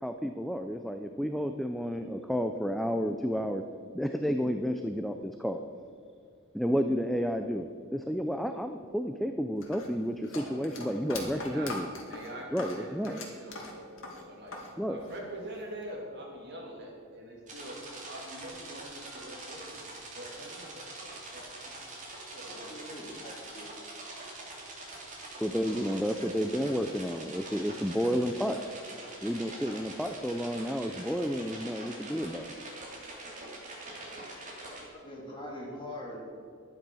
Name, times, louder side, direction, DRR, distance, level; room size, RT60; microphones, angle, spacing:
voice 1, 0.0-3.6 3.9-5.6 6.5-11.9 12.5-13.2 14.8-15.0 25.4-28.6 29.2-32.6, equal, ahead, 6 dB, 0.4 m, -31 dB
sound 1, 9.6-14.7 15.0-15.8, left 3 dB, 65° left, 2.3 m, -42 dB
voice 2, 11.1-11.8 12.1-14.6 14.9-19.8 20.1-22.0 22.3-22.8 33.8-34.3, right 1 dB, 55° right, -1 dB, 2.9 m, -45 dB
sound 2, 17.5-34.9, right 2 dB, 35° right, 2.9 m, -44 dB
voice 3, 22.7-23.7 34.9-36.4, left 1 dB, 25° left, -3 dB, 3.2 m, -42 dB
12.0 x 10.5 x 6.3 m, 2.2 s
head